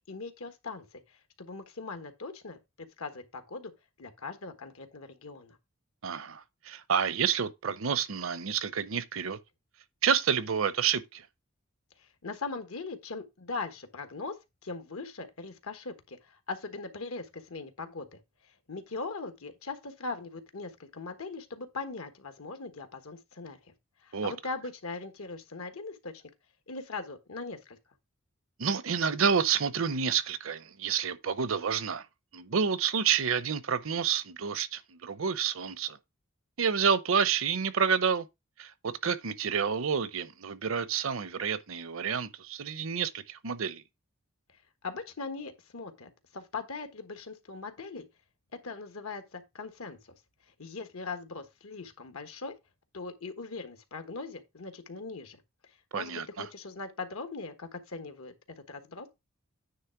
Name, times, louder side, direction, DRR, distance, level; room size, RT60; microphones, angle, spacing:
voice 1, 0.1-3.7 4.0-5.6 12.0-14.3 14.6-18.2 18.7-23.6 24.0-26.2 26.7-27.8 44.8-48.1 48.5-50.0 50.6-52.5 52.9-55.4 55.9-58.3 58.7-59.1, left 3 dB, 80° left, 1.4 m, -40 dB
voice 2, 6.0-9.4 10.0-11.2 24.1-24.3 28.6-32.0 32.3-36.0 36.6-38.3 38.6-43.8 55.9-56.5, right 7 dB, 70° right, 0.7 m, -29 dB
9.6 x 3.3 x 5.7 m
head